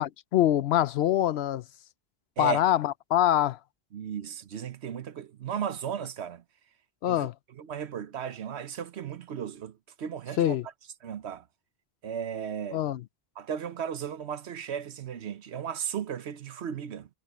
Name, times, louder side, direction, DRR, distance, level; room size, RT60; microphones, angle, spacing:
voice 1, 0.0-1.6 2.4-3.6 7.0-7.3 10.4-10.7 12.7-13.0, left 12 dB, 75° left, 0.8 m, -24 dB
voice 2, 3.9-6.4 7.0-10.6 11.0-11.4 12.0-12.9 13.4-17.1, right 8 dB, 85° right, 1.2 m, -35 dB
omnidirectional pair, 1.1 m